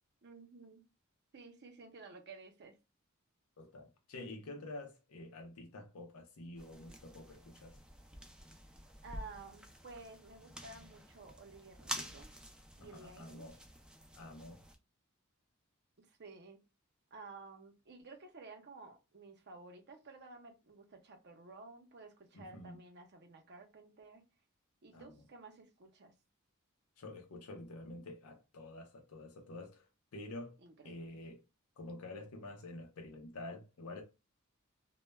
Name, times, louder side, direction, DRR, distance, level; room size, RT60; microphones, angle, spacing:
voice 1, 0.2-0.8 1.3-2.7 9.0-12.3 12.8-13.4 16.0-16.6 17.1-24.2 24.8-26.1 30.6-31.2, right 3 dB, 50° right, 0.6 m, -53 dB
voice 2, 3.6-7.8 12.8-13.6 14.2-14.6 22.3-22.8 24.9-25.1 27.0-29.9 30.1-31.4 31.8-34.0, left 2 dB, 90° left, 0.6 m, -48 dB
sound 1, 6.6-14.8, right 1 dB, 5° right, 0.3 m, -49 dB
2.1 x 2.1 x 3.1 m
head